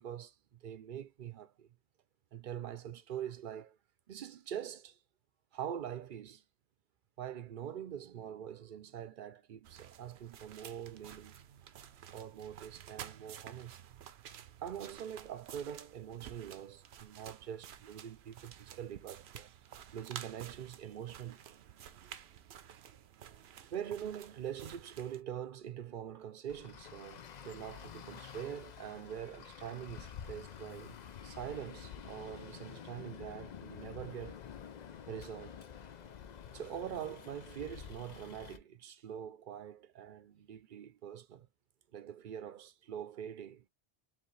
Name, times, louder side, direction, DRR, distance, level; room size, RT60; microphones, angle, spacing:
voice 1, 0.0-1.7 2.3-3.8 4.1-5.0 5.5-6.4 7.2-11.4 12.1-13.8 14.6-19.5 19.9-21.6 22.0-22.2 23.6-31.0 31.2-34.4 35.1-35.7 36.5-41.5 41.9-43.7, right 9 dB, 60° right, 0.8 m, -44 dB
sound 1, 9.6-25.2, right 9 dB, 85° right, 0.9 m, -52 dB
Traffic noise roadway noise, 26.5-38.6, left 8 dB, 50° left, 0.6 m, -49 dB
4.7 x 3.2 x 3.2 m
omnidirectional pair, 1.0 m